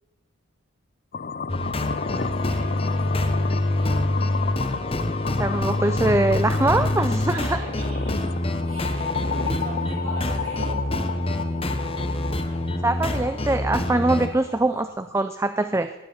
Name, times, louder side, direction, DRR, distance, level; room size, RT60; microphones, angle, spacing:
sound 1, 1.1-15.1, left 5 dB, 45° left, 0.5 m, -33 dB
sound 2, 1.5-14.3, left 1 dB, 25° left, 1.1 m, -26 dB
voice 1, 2.3-4.1 6.9-8.3 8.6-11.3, right 1 dB, 75° right, -4 dB, 7.2 m, -40 dB
voice 2, 5.3-7.6 12.8-15.9, right 2 dB, 15° right, 10 dB, 0.4 m, -23 dB
17.5 x 10.5 x 7.0 m, 1.2 s
head